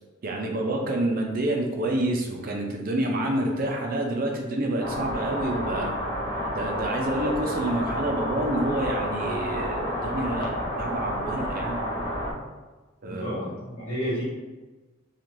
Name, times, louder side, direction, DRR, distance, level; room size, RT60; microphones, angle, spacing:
voice 1, 0.2-5.9 6.5-11.8 13.0-13.4, right 1 dB, 45° right, 1 dB, 0.5 m, -28 dB
sound 1, 4.8-12.3, equal, 25° left, 0.4 m, -30 dB
voice 2, 13.1-14.2, equal, 75° left, -9 dB, 1.1 m, -31 dB
3.1 x 2.4 x 2.5 m, 1.2 s
head